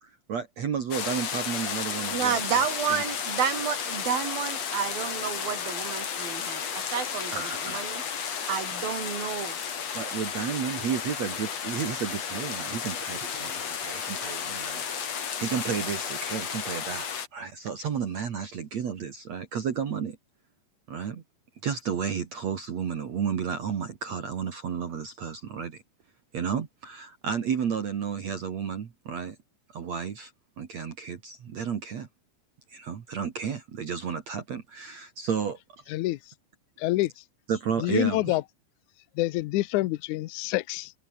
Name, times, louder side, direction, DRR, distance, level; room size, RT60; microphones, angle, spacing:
voice 1, 0.0-3.0 7.3-7.8 9.9-20.2 20.9-21.2 21.6-25.8 26.3-29.4 29.7-30.3 30.6-32.1 32.7-35.8 37.5-38.4, right 7 dB, 50° right, 2.9 m, -32 dB
sound 1, 0.9-17.3, left 7 dB, 45° left, 3.4 m, -33 dB
voice 2, 2.1-7.3 7.7-8.0 8.5-9.6, right 7 dB, 70° right, 5.4 m, -30 dB
voice 3, 36.8-37.1 37.8-38.4 39.2-40.9, left 18 dB, 80° left, 1.8 m, -26 dB
omnidirectional pair, 4.3 m